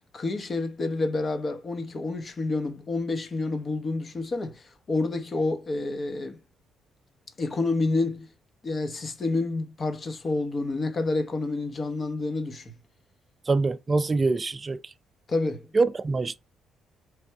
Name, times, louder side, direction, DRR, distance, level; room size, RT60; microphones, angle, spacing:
voice 1, 0.0-6.4 7.4-8.3 8.6-12.7 15.3-15.7, left 3 dB, 40° left, 0.9 m, -29 dB
voice 2, 13.5-14.8 15.7-16.4, right 3 dB, 30° right, 0.4 m, -24 dB
3.4 x 2.6 x 4.5 m
cardioid pair, 90°, 0 cm